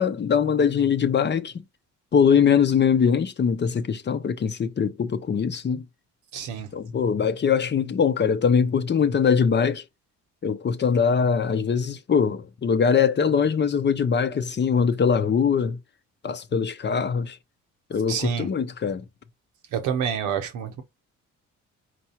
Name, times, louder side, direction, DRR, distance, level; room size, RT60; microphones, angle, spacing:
voice 1, 0.0-1.5 2.1-5.8 6.7-9.8 10.4-15.8 16.2-17.4 17.9-19.1, left 6 dB, 35° left, 0.6 m, -22 dB
voice 2, 6.3-6.7 18.1-18.5 19.7-20.8, right 8 dB, 90° right, 1.0 m, -28 dB
4.6 x 2.4 x 4.3 m
cardioid pair, 90°, 30 cm